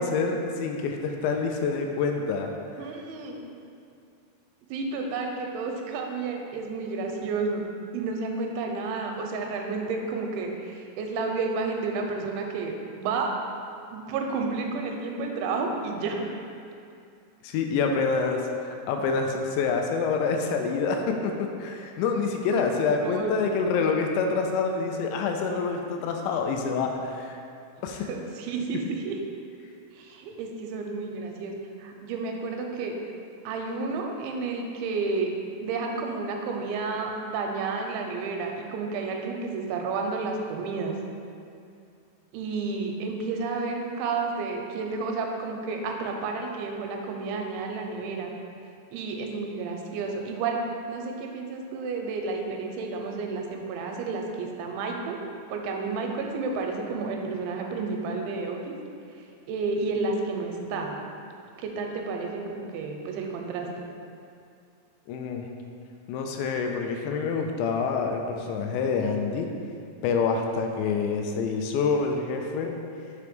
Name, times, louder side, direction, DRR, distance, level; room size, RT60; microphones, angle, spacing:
voice 1, 0.0-2.5 17.4-27.4 27.8-28.1 65.1-65.5 66.1-69.5 70.0-72.7, left 5 dB, 85° left, 3 dB, 2.6 m, -27 dB
voice 2, 2.8-3.4 4.7-7.6 7.9-13.3 13.9-16.4 22.6-23.3 28.1-29.2 29.9-31.5 31.8-32.9 33.5-35.3 35.6-40.9 42.3-48.3 48.9-50.6 50.9-55.2 55.5-58.6 59.5-61.0 61.6-63.8, right 4 dB, 85° right, 2 dB, 2.9 m, -31 dB
6.9 x 3.2 x 5.0 m, 2.5 s
omnidirectional pair, 5.2 m